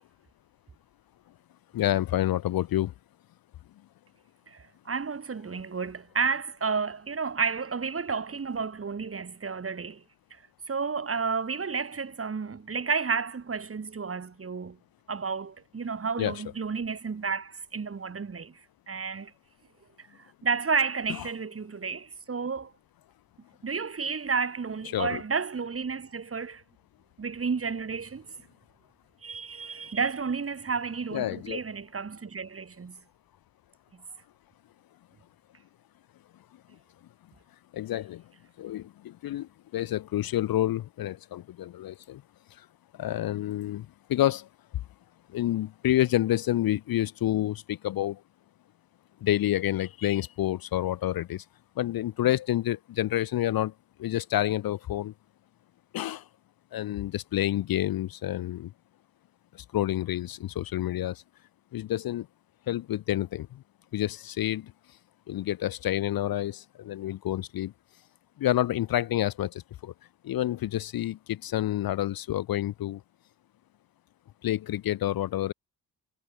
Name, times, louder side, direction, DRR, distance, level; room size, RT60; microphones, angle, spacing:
voice 1, 1.7-2.9 16.2-16.4 24.9-25.2 31.1-31.6 37.7-38.2 38.6-42.2 42.6-42.7 42.9-44.5 45.3-48.2 49.2-51.4 51.8-53.7 54.0-55.1 55.9-56.2 56.7-58.7 59.5-61.2 61.7-62.3 62.7-63.6 63.9-64.7 65.3-67.7 68.4-69.9 70.2-73.0 74.4-75.5, left 13 dB, 60° left, 0.5 m, -28 dB
voice 2, 4.5-10.0 10.3-10.4 10.7-14.8 15.1-18.6 18.9-19.3 20.0-22.7 23.6-26.6 27.2-28.3 29.2-33.0, right 5 dB, 35° right, 1.8 m, -31 dB
cardioid pair, 95°, 40 cm